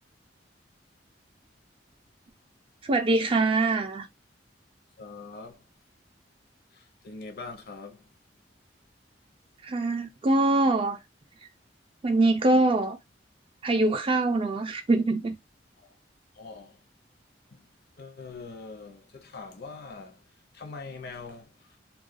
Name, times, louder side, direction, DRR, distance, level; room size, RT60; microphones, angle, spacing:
voice 1, 2.8-4.0 9.6-11.0 12.0-13.0 13.6-15.4, right 2 dB, 30° right, 0.4 m, -23 dB
voice 2, 5.0-5.6 6.7-8.1 15.8-15.9 16.4-16.8 17.5-17.7 18.0-20.2 20.5-21.8, left 4 dB, 60° left, 0.6 m, -43 dB
2.3 x 2.1 x 2.4 m
head